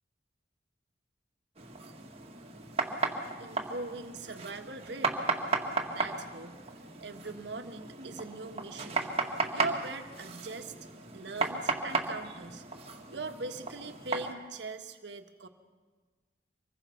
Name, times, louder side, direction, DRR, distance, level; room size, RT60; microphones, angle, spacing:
sound 1, 1.6-14.3, right 3 dB, 35° right, 2.0 m, -35 dB
voice 1, 3.4-5.2 5.9-6.7 7.0-9.1 9.5-10.7 11.1-12.7 13.1-15.5, right 3 dB, 70° right, 7 dB, 1.6 m, -41 dB
25.0 x 21.5 x 5.9 m, 1.4 s
head